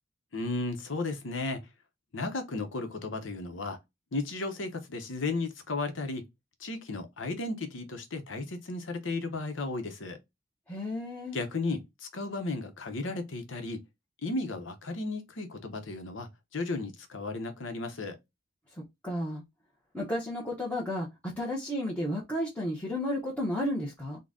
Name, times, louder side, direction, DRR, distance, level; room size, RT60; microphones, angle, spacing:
voice 1, 0.3-1.6 2.1-3.8 4.1-6.2 6.6-10.2 11.3-13.8 14.2-18.2, left 3 dB, 75° left, 0.9 m, -34 dB
voice 2, 10.7-11.4 18.7-19.4 19.9-24.2, left 1 dB, 5° left, 0.8 m, -33 dB
3.8 x 2.2 x 3.6 m
head